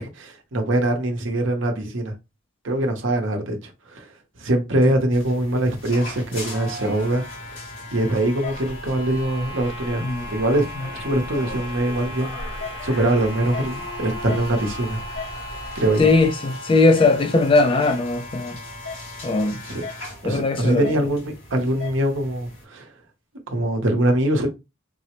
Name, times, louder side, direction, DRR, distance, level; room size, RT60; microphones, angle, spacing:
voice 1, 0.0-2.1 2.6-4.1 4.4-7.6 7.9-10.7 10.9-12.4 12.8-15.0 15.7-16.1 19.6-22.9 23.5-24.5, right 1 dB, 65° right, 0.8 m, -23 dB
sound 1, 5.1-22.6, left 1 dB, 65° left, 2.2 m, -36 dB
sound 2, 8.4-16.3, left 1 dB, 40° left, 0.8 m, -38 dB
voice 2, 16.0-18.6 19.2-19.6 20.2-20.9, left 3 dB, 25° left, 0.3 m, -19 dB
3.9 x 2.0 x 2.9 m
head